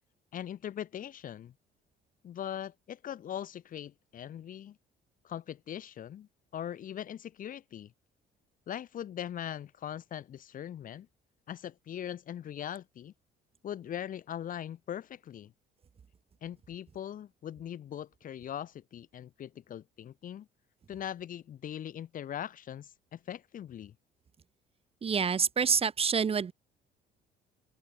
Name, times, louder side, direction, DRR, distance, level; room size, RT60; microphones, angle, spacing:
voice 1, 0.3-1.5 2.2-4.8 5.2-7.9 8.7-11.1 11.5-13.1 13.6-15.5 16.4-20.5 20.9-23.9, left 10 dB, 55° left, 2.9 m, -41 dB
voice 2, 25.0-26.5, right 6 dB, 35° right, 3.2 m, -27 dB
open air
cardioid pair, 110°, 17 cm